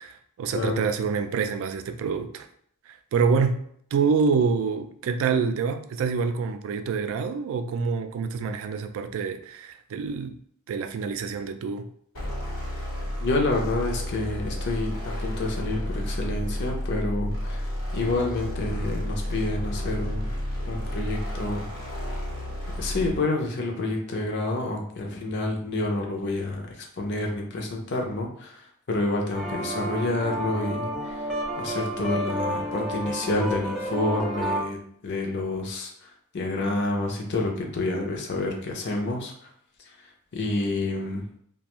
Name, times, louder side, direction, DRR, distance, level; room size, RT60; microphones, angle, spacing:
voice 1, 0.0-2.5 2.9-3.6 3.9-10.4 10.7-11.8, right 5 dB, 65° right, 9 dB, 0.3 m, -26 dB
voice 2, 0.5-0.9 13.2-17.6 17.9-20.3 20.7-21.7 22.8-31.3 31.6-34.8 35.0-39.3 40.3-41.2, left 2 dB, 50° left, 1 dB, 0.6 m, -28 dB
sound 1, 12.1-23.2, left 1 dB, 70° left, 1.1 m, -31 dB
sound 2, 29.3-34.6, equal, ahead, 0.5 m, -30 dB
2.4 x 2.2 x 2.9 m, 0.66 s
head